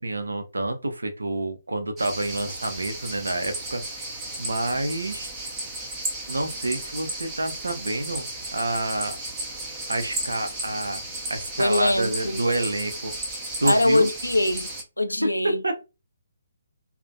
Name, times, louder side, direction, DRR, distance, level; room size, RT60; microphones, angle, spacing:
voice 1, 0.0-4.0 4.4-5.3 6.3-8.2 8.5-9.2 9.9-11.0 11.3-13.1 13.6-14.1 15.6-15.7, right 2 dB, 75° right, 0.5 m, -28 dB
Cicadas Cricket (Euboea Greece), 2.0-14.8, right 2 dB, 15° right, 0.6 m, -34 dB
voice 2, 11.6-12.4 13.6-14.7 15.0-15.7, left 1 dB, 85° left, 0.3 m, -23 dB
2.4 x 2.1 x 2.5 m
figure-of-eight pair, 135°, 0 cm